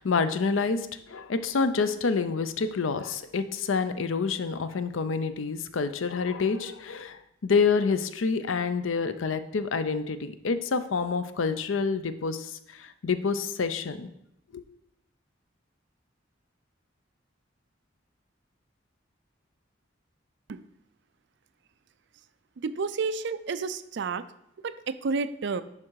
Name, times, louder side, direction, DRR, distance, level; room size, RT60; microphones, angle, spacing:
voice 1, 0.0-14.1 14.5-14.6, left 5 dB, 90° left, 12 dB, 0.6 m, -28 dB
voice 2, 22.6-24.2 24.6-25.6, right 4 dB, 60° right, 13 dB, 0.4 m, -30 dB
11.0 x 3.7 x 4.7 m, 0.78 s
head